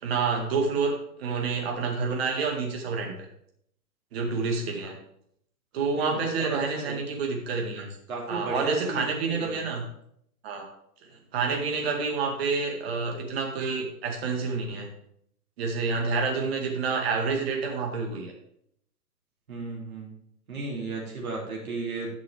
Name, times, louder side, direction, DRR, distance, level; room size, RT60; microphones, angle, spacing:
voice 1, 0.0-0.9 1.2-3.1 4.1-4.9 5.7-7.9 8.3-9.8 10.4-10.6 11.3-14.9 15.6-18.3, right 4 dB, 40° right, 1 dB, 2.0 m, -28 dB
voice 2, 5.9-7.0 8.1-9.6 19.5-20.2 20.5-22.1, right 2 dB, 60° right, -2 dB, 3.1 m, -34 dB
11.0 x 6.1 x 3.4 m, 0.72 s
figure-of-eight pair, 120°, 48 cm